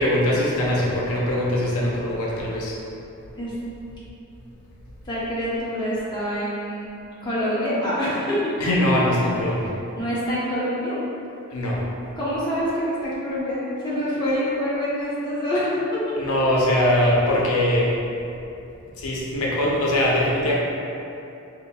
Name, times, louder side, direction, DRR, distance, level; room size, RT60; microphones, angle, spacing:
voice 1, 0.0-2.8 8.6-9.8 11.5-11.8 16.2-18.0 19.0-20.5, left 1 dB, 85° left, -4 dB, 0.6 m, -21 dB
voice 2, 5.0-6.9 7.2-8.5 10.0-11.0 12.1-16.0, equal, 20° left, -10 dB, 0.9 m, -26 dB
4.9 x 2.7 x 2.3 m, 2.8 s
head